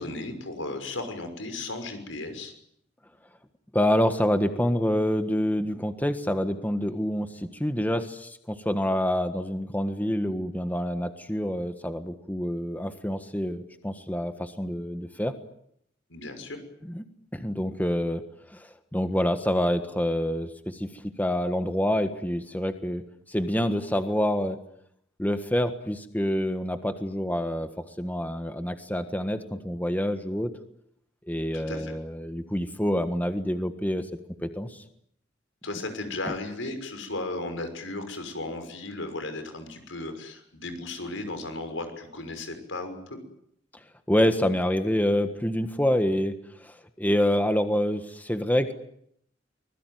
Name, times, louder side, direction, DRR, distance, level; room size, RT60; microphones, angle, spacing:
voice 1, 0.0-2.5 16.1-16.6 31.5-31.9 35.6-43.2, left 2 dB, 85° left, 7 dB, 6.1 m, -35 dB
voice 2, 3.7-15.3 16.9-17.0 17.3-18.2 18.5-23.0 23.3-24.6 25.2-30.5 31.3-34.1 34.4-34.8 44.1-46.3 46.6-48.7, equal, 10° left, 8 dB, 1.5 m, -27 dB
25.0 x 21.0 x 9.4 m, 0.72 s
head